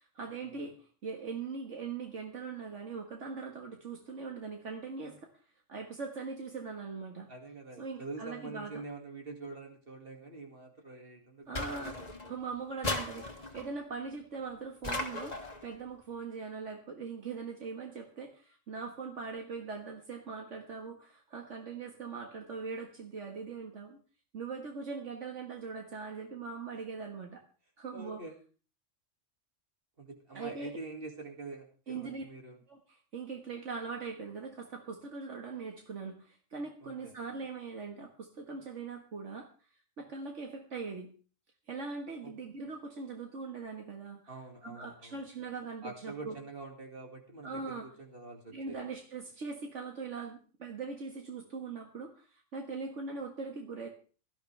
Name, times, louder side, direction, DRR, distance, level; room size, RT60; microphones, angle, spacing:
voice 1, 0.0-5.3 5.7-7.3 7.8-8.8 11.5-13.3 13.5-24.0 24.3-27.4 27.8-28.2 30.3-30.8 31.9-32.2 32.7-39.5 40.0-41.1 41.7-44.3 44.6-46.4 47.4-47.9 48.5-53.9, right 4 dB, 70° right, 2 dB, 1.9 m, -41 dB
voice 2, 7.3-12.3 27.9-28.4 30.0-32.6 36.8-37.1 42.2-42.3 44.3-45.2 45.8-48.9, right 3 dB, 45° right, 2 dB, 2.6 m, -46 dB
sound 1, 11.6-12.3 12.8-13.7 14.8-15.7, left 2 dB, 35° left, 1.9 m, -37 dB
17.5 x 13.0 x 3.4 m, 0.37 s
omnidirectional pair, 1.3 m